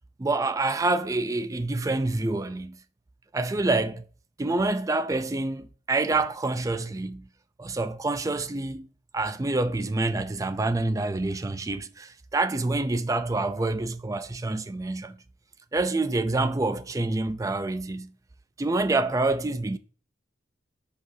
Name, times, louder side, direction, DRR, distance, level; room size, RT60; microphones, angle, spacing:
voice 1, 0.2-2.8 3.3-4.0 4.4-7.3 7.6-8.9 9.1-15.2 15.7-18.1 18.6-19.8, right 2 dB, 15° right, 0.3 m, -27 dB
6.1 x 5.8 x 2.7 m
head